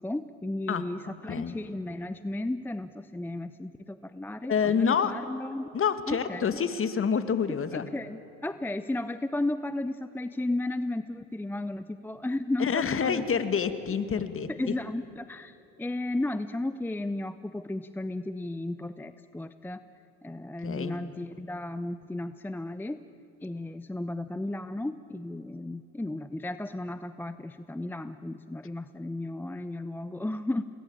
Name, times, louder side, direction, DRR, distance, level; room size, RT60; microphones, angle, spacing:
voice 1, 0.0-5.7 6.1-6.5 7.7-13.2 14.5-19.8 20.2-23.0 23.4-30.6, left 2 dB, 5° left, 12 dB, 0.7 m, -34 dB
voice 2, 4.5-5.1 5.7-7.9 12.6-14.7 20.6-21.0, left 7 dB, 35° left, 10 dB, 2.1 m, -27 dB
28.5 x 20.0 x 8.9 m, 2.9 s
hypercardioid pair, 75°, 38 cm